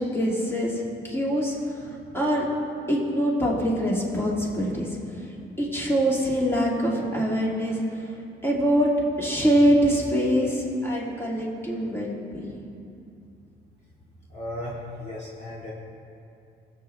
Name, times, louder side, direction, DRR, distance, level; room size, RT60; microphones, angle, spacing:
voice 1, 0.0-2.5 2.9-5.3 5.6-8.1 8.4-8.9 9.2-12.7, equal, 10° left, -4 dB, 2.8 m, -24 dB
voice 2, 14.3-15.7, left 1 dB, 35° left, -6 dB, 2.2 m, -36 dB
19.0 x 8.0 x 3.5 m, 2.6 s
cardioid pair, 90°, 20 cm